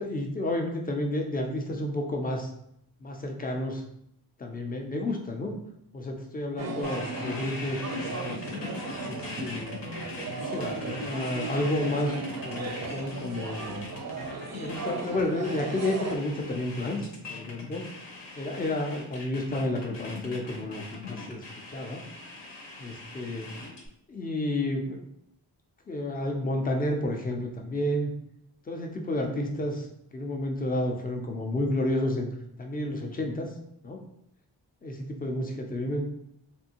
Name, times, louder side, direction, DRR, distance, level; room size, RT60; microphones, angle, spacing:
voice 1, 0.0-2.5 3.0-3.8 4.4-5.5 5.9-7.8 8.1-8.4 9.0-9.8 10.4-13.9 14.5-17.8 18.4-22.0 22.8-23.5 24.1-25.0 25.9-28.1 28.7-32.3 32.6-33.5 33.8-34.0 34.8-36.0, left 1 dB, 20° left, 2 dB, 0.4 m, -31 dB
sound 1, 6.6-16.2, right 3 dB, 40° right, 0.4 m, -36 dB
sound 2, 6.8-23.9, left 3 dB, 70° left, 0.9 m, -41 dB
3.3 x 2.6 x 2.8 m, 0.75 s
wide cardioid pair, 140°, 44 cm